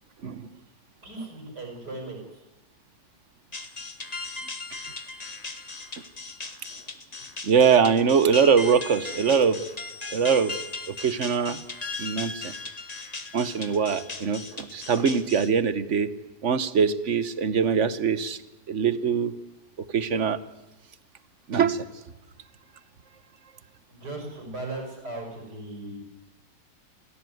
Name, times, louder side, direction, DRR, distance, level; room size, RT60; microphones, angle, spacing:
voice 1, 1.0-2.4 6.7-6.9 23.9-26.0, right 2 dB, 65° right, 2 dB, 6.3 m, -37 dB
sound 1, 3.5-15.5, left 3 dB, 25° left, 1.5 m, -37 dB
voice 2, 7.4-9.6 10.1-10.5 10.9-11.6 12.0-12.5 13.3-16.1 16.4-18.4 18.7-19.3 19.9-20.4 21.5-21.9, right 6 dB, 45° right, 14 dB, 1.2 m, -22 dB
27.0 x 16.0 x 9.4 m, 1.1 s
omnidirectional pair, 1.9 m